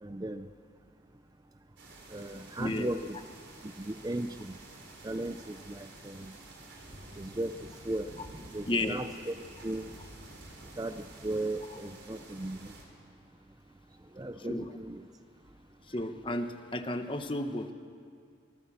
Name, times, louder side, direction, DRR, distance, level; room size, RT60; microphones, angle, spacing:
voice 1, 0.0-0.5 2.1-3.2 3.6-4.6 5.0-6.4 7.2-8.1 8.5-9.3 9.6-9.9 10.8-12.7 14.1-15.0, right 1 dB, 20° right, 9 dB, 0.5 m, -36 dB
sound 1, 1.8-12.8, right 2 dB, 70° right, 4.0 m, -50 dB
voice 2, 2.6-2.9 8.7-9.0 14.4-14.8 15.9-17.7, left 1 dB, 25° left, 7 dB, 1.1 m, -33 dB
25.5 x 19.5 x 7.3 m, 2.3 s
head